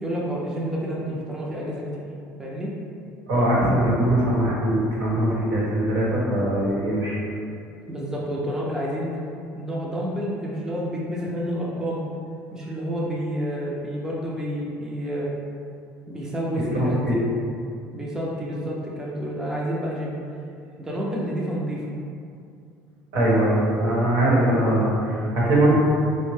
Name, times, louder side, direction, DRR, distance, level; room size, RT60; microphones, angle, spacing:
voice 1, 0.0-2.1 2.4-2.7 7.9-9.1 9.5-12.0 12.5-15.3 16.1-17.2 17.9-20.2 20.8-21.9, equal, 10° right, -5 dB, 0.4 m, -29 dB
voice 2, 3.3-7.2 16.5-17.2 23.1-25.7, right 1 dB, 85° right, -6 dB, 1.3 m, -21 dB
4.4 x 2.1 x 3.1 m, 2.4 s
cardioid pair, 160°, 6 cm